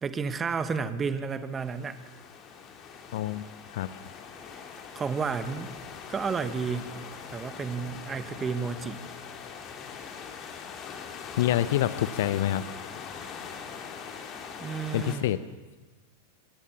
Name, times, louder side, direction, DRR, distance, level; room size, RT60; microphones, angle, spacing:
voice 1, 0.0-2.0 4.9-5.7 6.1-6.9 7.3-9.0 14.6-15.3, right 5 dB, 20° right, 12 dB, 1.4 m, -31 dB
sound 1, 1.4-15.2, left 6 dB, 30° left, 3.2 m, -42 dB
voice 2, 3.1-4.0 11.4-12.6 14.9-15.4, left 13 dB, 55° left, 15 dB, 0.9 m, -27 dB
26.5 x 21.5 x 7.2 m, 1.2 s
figure-of-eight pair, 90°, 0 cm